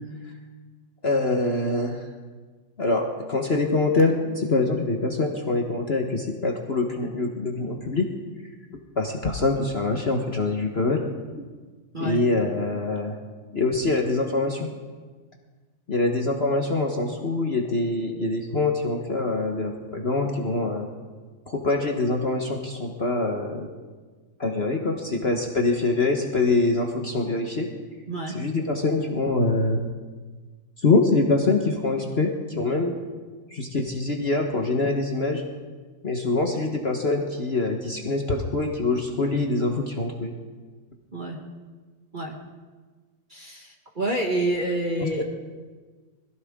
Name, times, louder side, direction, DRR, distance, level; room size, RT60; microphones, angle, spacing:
voice 1, 1.0-2.0 2.8-8.1 9.0-11.0 12.0-13.2 13.5-14.7 15.9-20.9 21.5-23.7 24.4-27.7 28.3-29.8 30.8-32.9 33.5-35.4 36.0-40.3 45.0-45.2, left 3 dB, 40° left, 2 dB, 1.2 m, -24 dB
voice 2, 43.3-45.2, right 1 dB, 30° right, 1 dB, 1.3 m, -28 dB
22.0 x 15.5 x 3.7 m, 1.4 s
omnidirectional pair, 2.1 m